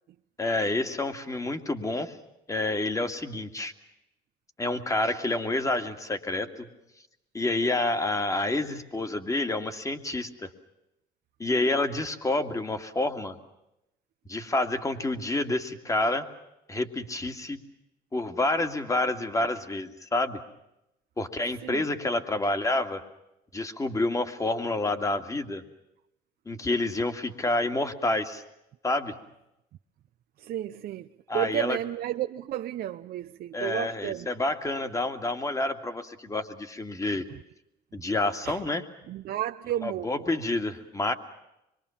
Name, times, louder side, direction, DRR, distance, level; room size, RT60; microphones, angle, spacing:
voice 1, 0.4-2.2 2.5-3.7 4.6-6.7 7.3-10.5 11.4-13.4 14.3-16.3 16.7-17.6 18.1-20.4 21.2-23.0 23.5-25.6 26.5-28.4 28.8-29.1 31.3-31.8 33.5-37.2 37.9-38.9 39.8-41.1, left 2 dB, 20° left, 2.3 m, -28 dB
voice 2, 30.4-31.1 31.3-34.3 38.5-38.6 39.1-40.4, right 12 dB, 65° right, 0.8 m, -32 dB
25.5 x 23.0 x 7.2 m
cardioid pair, 110°, 17 cm